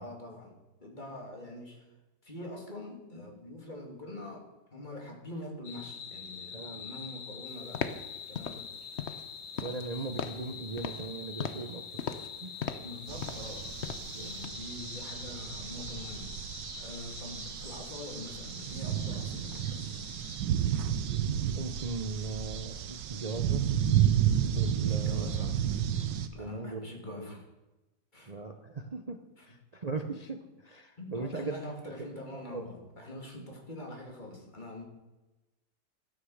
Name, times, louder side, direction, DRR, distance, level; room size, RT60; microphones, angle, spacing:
voice 1, 0.0-1.8 2.2-7.8 8.3-8.7 12.8-13.7 14.1-20.0 24.9-25.6 26.3-27.4 28.1-28.3 29.4-29.5 31.0-34.8, left 1 dB, 25° left, 0 dB, 2.8 m, -44 dB
sound 1, 5.6-20.4, left 7 dB, 85° left, 2.1 m, -45 dB
voice 2, 6.5-6.9 9.6-12.0 12.4-12.5 14.1-14.4 21.5-23.7 24.5-25.5 26.3-27.4 28.3-29.2 29.5-31.5 31.9-32.0 32.3-32.7, right 3 dB, 50° right, 6 dB, 0.4 m, -39 dB
sound 2, 7.7-8.1 8.3-8.6 9.0-9.3 9.6-9.9 10.2-10.5 10.8-11.1 11.4-11.7 12.0-12.3 12.6-12.9 13.2-13.5 13.8-14.1 14.4-14.5, left 7 dB, 55° left, 0.8 m, -37 dB
sound 3, 13.1-26.3, right 9 dB, 80° right, 1.5 m, -32 dB
13.0 x 9.4 x 6.5 m, 1.1 s
omnidirectional pair, 1.9 m